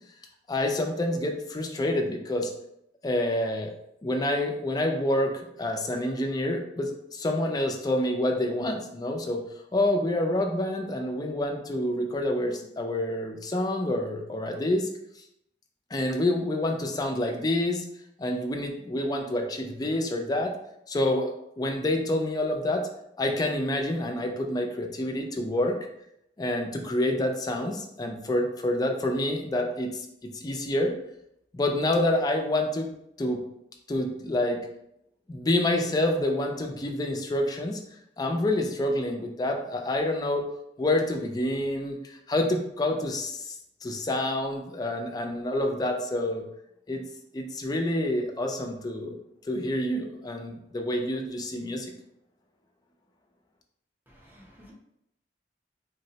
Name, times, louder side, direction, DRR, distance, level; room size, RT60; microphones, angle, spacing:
voice 1, 0.5-2.5 3.0-3.7 4.0-9.4 9.7-14.9 15.9-17.9 18.2-20.5 20.9-21.3 21.6-22.9 23.2-25.8 26.4-30.9 31.5-32.9 33.2-33.4 33.9-34.6 35.3-37.8 38.2-40.4 40.8-46.4 46.9-47.0 47.3-49.2 49.4-51.9, left 1 dB, 20° left, 3 dB, 0.4 m, -27 dB
voice 2, 54.1-54.7, equal, 10° right, -4 dB, 0.7 m, -53 dB
3.7 x 2.0 x 2.7 m, 0.79 s
head